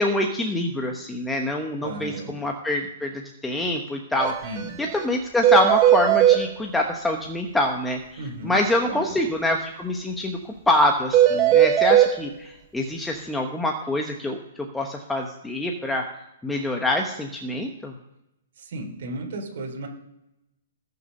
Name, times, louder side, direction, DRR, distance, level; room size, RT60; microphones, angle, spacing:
voice 1, 0.0-3.1 3.4-4.3 4.8-14.4 14.7-16.0 16.4-17.9, left 1 dB, 5° left, 1 dB, 1.0 m, -25 dB
voice 2, 1.8-2.3 4.4-4.8 8.2-8.6 8.9-9.1 18.6-19.9, right 2 dB, 55° right, -1 dB, 3.7 m, -34 dB
sound 1, 4.2-4.3 4.6-4.7 5.0-5.1 5.4-6.4 11.1-12.1, right 12 dB, 25° right, 1.5 m, -17 dB
19.5 x 6.7 x 5.4 m, 0.90 s
hypercardioid pair, 155°, 0 cm